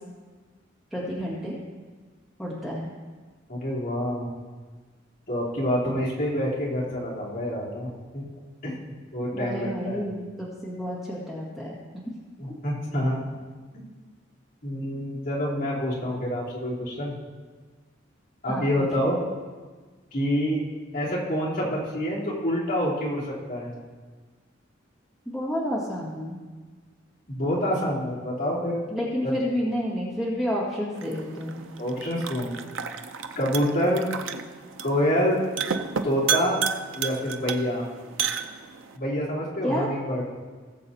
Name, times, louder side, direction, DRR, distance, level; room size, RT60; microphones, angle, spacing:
voice 1, 0.9-1.5 2.4-2.9 9.3-12.0 18.5-18.9 25.3-26.4 28.9-31.6 39.6-39.9, equal, ahead, -7 dB, 1.9 m, -30 dB
voice 2, 3.5-4.3 5.3-8.3 8.6-8.7 9.1-10.0 12.4-13.2 14.6-17.1 18.4-19.2 20.1-20.6 20.9-23.7 27.3-28.9 29.2-29.3 31.8-32.5 33.3-34.1 34.8-35.4 36.0-36.6 36.9-37.8 38.9-40.2, equal, 45° left, -8 dB, 3.2 m, -27 dB
sound 1, 31.0-39.0, right 7 dB, 80° right, 0.6 m, -32 dB
19.0 x 7.5 x 2.8 m, 1.4 s
head